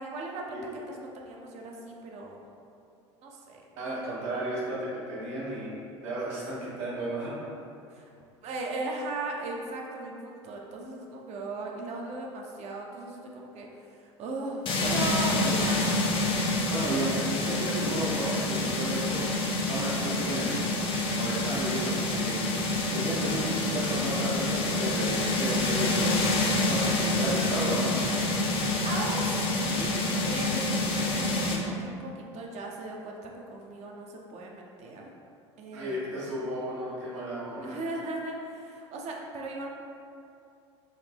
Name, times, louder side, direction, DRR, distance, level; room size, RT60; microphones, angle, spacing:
voice 1, 0.0-2.4 3.2-3.6 7.9-8.1 8.4-15.9 16.6-16.7 28.8-30.0 30.3-35.1 35.6-36.0 37.6-39.7, right 2 dB, 45° right, 0 dB, 0.6 m, -37 dB
voice 2, 3.7-5.7 6.0-7.5 15.4-15.6 16.7-19.3 19.7-20.6 21.1-22.4 22.9-26.3 26.7-28.0 35.7-37.8, right 1 dB, 70° right, -7 dB, 1.2 m, -33 dB
sound 1, 14.7-31.6, left 2 dB, 35° left, 0.6 m, -27 dB
3.9 x 2.1 x 3.4 m, 2.5 s
hypercardioid pair, 75°, 15 cm